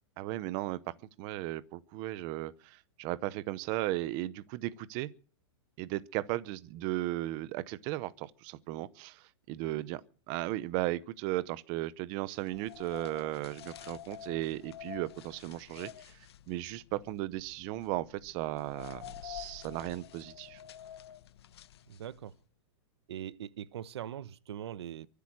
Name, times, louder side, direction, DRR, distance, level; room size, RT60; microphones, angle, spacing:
voice 1, 0.2-5.1 5.8-10.0 10.3-16.2 16.5-20.6, right 16 dB, 25° right, 0.7 m, -36 dB
sound 1, 12.4-22.3, left 11 dB, 65° left, 1.0 m, -49 dB
voice 2, 21.9-22.3 23.1-25.1, right 10 dB, 70° right, 0.9 m, -41 dB
23.5 x 8.4 x 6.2 m
supercardioid pair, 170°, 14 cm